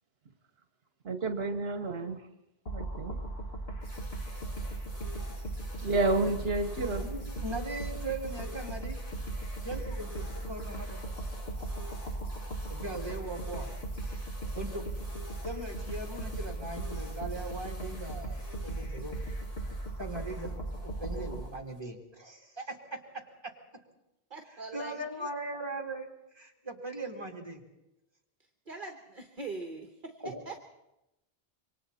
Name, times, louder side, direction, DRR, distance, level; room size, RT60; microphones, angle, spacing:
voice 1, 1.0-2.3 2.7-3.2 5.8-7.1, right 2 dB, 70° right, 7 dB, 1.3 m, -30 dB
sound 1, 2.7-21.5, right 2 dB, 80° left, 2.3 m, -38 dB
sound 2, 3.8-21.8, left 1 dB, 35° left, 3.2 m, -51 dB
voice 2, 6.8-9.0 9.6-11.0 12.7-13.7 14.5-14.8 15.4-19.2 20.0-20.6 20.8-23.5 24.7-26.1 26.3-27.6 30.2-30.4, right 2 dB, 25° right, 0 dB, 2.9 m, -39 dB
voice 3, 24.3-25.2 28.7-30.7, right 3 dB, 50° right, 5 dB, 1.5 m, -42 dB
27.0 x 24.0 x 4.2 m, 0.91 s
omnidirectional pair, 1.1 m